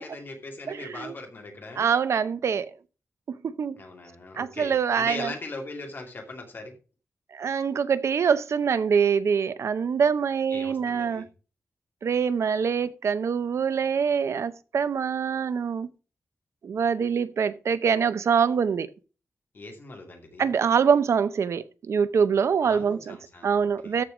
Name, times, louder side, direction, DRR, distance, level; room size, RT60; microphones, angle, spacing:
voice 1, 0.0-1.9 3.8-6.8 10.5-11.3 19.5-20.5 22.6-24.0, left 2 dB, 45° left, 2.5 m, -40 dB
voice 2, 0.7-1.1 1.8-2.7 3.3-3.8 4.4-5.3 7.3-11.2 12.0-15.9 16.6-18.9 20.4-23.2 23.4-24.0, right 6 dB, 70° right, 0.7 m, -24 dB
13.5 x 4.6 x 4.9 m
wide cardioid pair, 165°, 5 cm